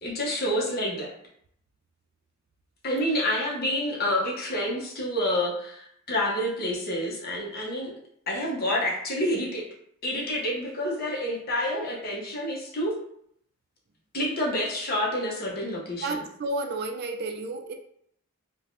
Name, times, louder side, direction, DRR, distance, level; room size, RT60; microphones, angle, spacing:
voice 1, 0.0-1.1 2.8-8.0 8.3-9.6 10.0-13.0 14.1-16.2, left 1 dB, 45° left, -3 dB, 0.7 m, -28 dB
voice 2, 16.0-17.7, right 2 dB, 45° right, 5 dB, 0.3 m, -31 dB
3.2 x 2.1 x 2.6 m, 0.69 s
head